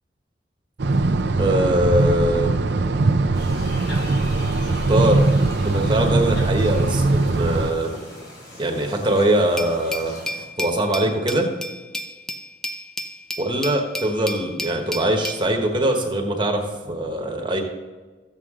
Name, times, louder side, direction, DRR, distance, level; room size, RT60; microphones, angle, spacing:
sound 1, 0.8-7.7, right 2 dB, 65° right, 0.6 m, -21 dB
voice 1, 1.4-2.5 4.7-5.3 5.6-8.0 8.6-10.1 10.6-11.5 13.4-17.6, right 1 dB, 25° right, 2 dB, 1.2 m, -22 dB
sound 2, 3.3-10.4, left 1 dB, 75° left, 3.5 m, -41 dB
Glass, 9.6-15.4, left 1 dB, 5° left, 0.5 m, -32 dB
13.5 x 8.1 x 3.7 m, 1.3 s
head